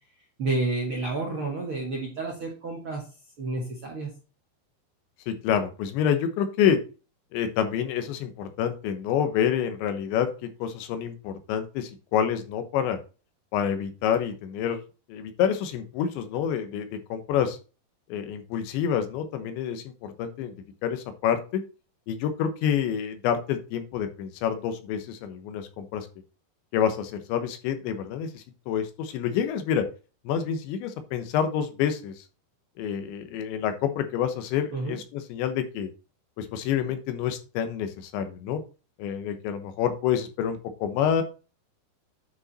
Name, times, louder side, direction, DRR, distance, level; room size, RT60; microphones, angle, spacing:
voice 1, 0.4-3.1 3.4-4.1 34.7-35.0, right 3 dB, 50° right, -2 dB, 1.6 m, -30 dB
voice 2, 5.3-6.8 7.3-13.0 13.5-14.8 15.1-17.6 18.1-20.5 20.8-21.6 22.1-26.1 26.7-29.8 30.3-32.2 32.8-35.9 36.4-38.6 39.0-41.2, left 8 dB, 85° left, 8 dB, 3.4 m, -28 dB
9.5 x 5.1 x 4.2 m, 0.33 s
omnidirectional pair, 5.1 m